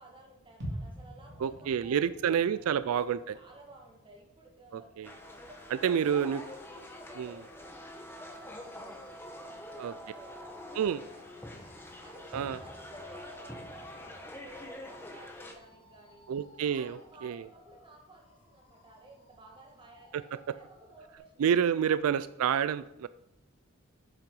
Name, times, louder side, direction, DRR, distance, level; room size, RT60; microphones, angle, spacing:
voice 1, 0.0-2.7 3.3-4.9 5.5-11.7 12.0-16.3 16.6-21.5 21.7-22.0, right 1 dB, 20° right, 0 dB, 1.7 m, -55 dB
sound 1, 0.6-4.5 4.9-5.0, equal, 55° right, 2.4 m, -45 dB
voice 2, 1.4-3.4 4.7-5.1 5.8-6.4 7.2-7.4 9.8-9.9 10.7-11.0 12.3-12.6 16.3-17.5 21.4-23.1, right 8 dB, 85° right, 15 dB, 0.3 m, -29 dB
sound 2, 5.0-15.5, left 1 dB, 10° left, 1.0 m, -46 dB
sound 3, 5.1-21.2, equal, 25° left, 2.5 m, -60 dB
7.8 x 7.5 x 5.3 m, 0.85 s
head